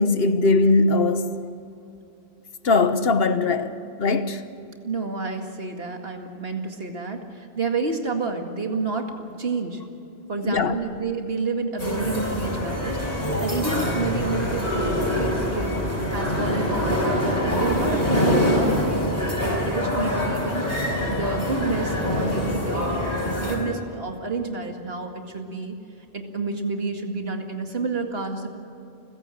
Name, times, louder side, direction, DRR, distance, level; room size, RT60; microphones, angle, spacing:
voice 1, 0.0-1.5 2.6-4.4 10.4-10.7, left 3 dB, 70° left, 1.3 m, -20 dB
voice 2, 4.8-9.8 10.3-25.7 26.1-28.5, right 3 dB, 70° right, 2.4 m, -30 dB
sound 1, 11.8-23.6, left 1 dB, 45° left, 4.9 m, -24 dB
29.5 x 16.0 x 7.8 m
omnidirectional pair, 1.0 m